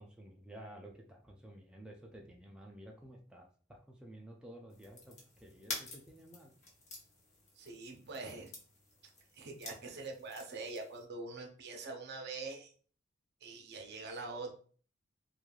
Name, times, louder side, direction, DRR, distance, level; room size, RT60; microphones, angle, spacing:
voice 1, 0.0-6.5, right 1 dB, 5° right, -1 dB, 0.3 m, -53 dB
sound 1, 4.7-11.0, left 2 dB, 35° left, 0.8 m, -49 dB
voice 2, 7.6-8.5 9.3-12.7 13.4-14.5, right 3 dB, 55° right, 2 dB, 0.6 m, -44 dB
3.1 x 2.3 x 2.2 m, 0.43 s
head